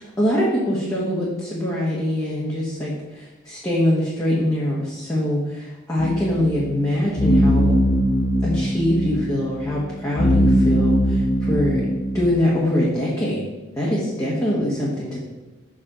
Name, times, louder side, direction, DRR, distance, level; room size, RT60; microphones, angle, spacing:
voice 1, 0.2-7.7 8.4-11.2 11.5-11.8 12.1-13.4 13.8-15.2, left 1 dB, 15° left, -7 dB, 1.3 m, -23 dB
sound 1, 6.0-12.2, equal, 70° left, 1.0 m, -21 dB
6.2 x 5.0 x 5.0 m, 1.1 s
head